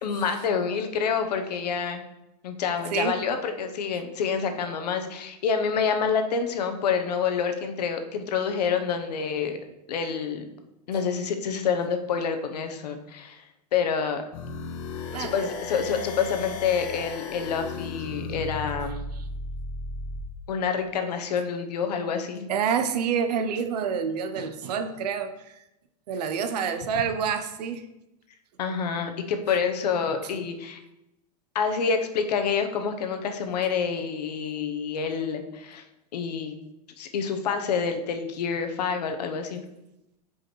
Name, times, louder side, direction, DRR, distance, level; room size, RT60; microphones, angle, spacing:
voice 1, 0.0-2.0 2.4-9.6 9.9-10.5 10.9-13.4 13.7-14.2 15.2-19.0 20.5-22.5 28.6-30.8 31.5-35.8 36.1-36.5 37.0-39.6, left 6 dB, 85° left, 6 dB, 0.9 m, -27 dB
sound 1, 14.3-20.3, left 3 dB, 50° left, 0.8 m, -35 dB
voice 2, 15.1-15.5 19.2-19.3 22.5-25.6 26.1-27.9 29.5-29.6, right 7 dB, 80° right, 8 dB, 0.6 m, -28 dB
6.4 x 5.0 x 3.1 m, 0.90 s
supercardioid pair, 150°, 20 cm